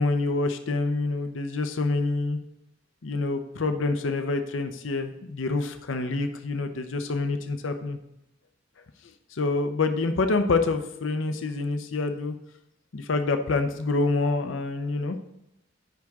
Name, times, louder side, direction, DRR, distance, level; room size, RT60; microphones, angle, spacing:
voice 1, 0.0-2.4 3.0-8.0 9.3-12.3 12.9-15.2, left 3 dB, 90° left, 7 dB, 0.6 m, -27 dB
9.3 x 3.6 x 6.2 m, 0.86 s
head